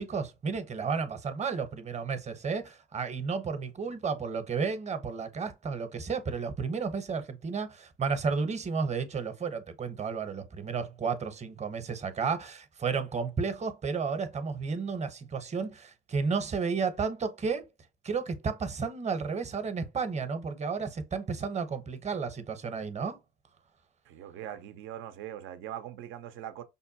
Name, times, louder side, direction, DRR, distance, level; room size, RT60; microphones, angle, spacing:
voice 1, 0.0-17.6 18.0-23.2, right 5 dB, 35° right, 0.9 m, -32 dB
voice 2, 24.1-26.6, right 11 dB, 75° right, 0.6 m, -41 dB
5.3 x 2.2 x 2.7 m
supercardioid pair, 75°, 21 cm